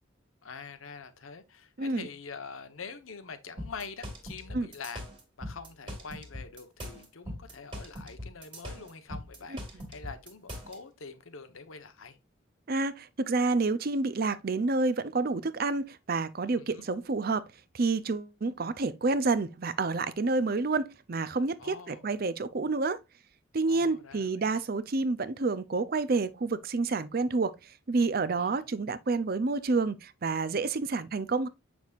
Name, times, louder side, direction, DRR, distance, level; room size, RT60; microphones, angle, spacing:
voice 1, 0.4-5.0 5.4-12.2 16.5-16.9 21.6-22.1 23.7-24.5 28.3-28.7, left 5 dB, 90° left, 1.0 m, -45 dB
voice 2, 1.8-2.1 4.5-4.7 12.7-17.5 17.7-23.0 23.5-27.5 27.9-31.5, right 3 dB, 45° right, 0.5 m, -29 dB
sound 1, 3.6-10.8, equal, 25° right, 1.9 m, -41 dB
7.2 x 6.1 x 2.4 m
head